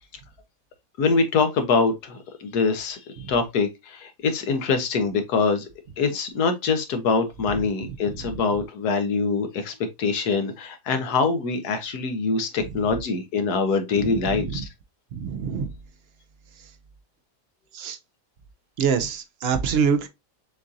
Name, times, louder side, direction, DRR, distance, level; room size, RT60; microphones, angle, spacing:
voice 1, 1.0-3.0 3.3-5.7 6.0-14.7, left 4 dB, 85° left, 1.4 m, -24 dB
voice 2, 14.0-14.6 15.1-15.7 17.7-18.0 18.8-20.1, right 6 dB, 65° right, 0.6 m, -25 dB
6.7 x 2.5 x 2.6 m
omnidirectional pair, 1.6 m